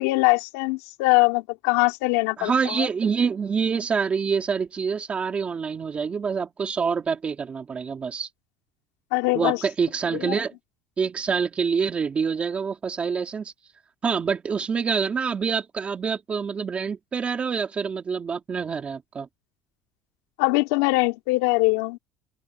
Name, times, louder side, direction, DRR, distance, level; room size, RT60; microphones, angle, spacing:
voice 1, 0.0-2.9 9.1-9.6 10.1-10.3 20.4-22.0, left 24 dB, 90° left, 3.6 m, -22 dB
voice 2, 2.4-8.3 9.3-10.5 11.0-13.5 14.0-19.3, right 6 dB, 20° right, 3.4 m, -26 dB
open air
cardioid pair, 160°, 6 cm